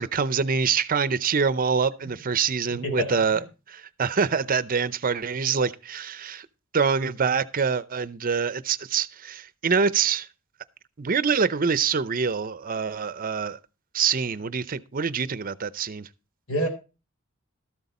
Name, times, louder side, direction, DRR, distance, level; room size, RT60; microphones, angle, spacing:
voice 1, 0.0-6.5 6.7-10.3 11.0-13.6 13.9-16.0, right 6 dB, 40° right, 0.6 m, -25 dB
voice 2, 2.7-3.4 16.5-16.7, equal, 80° left, 3.8 m, -28 dB
13.0 x 8.0 x 4.1 m
head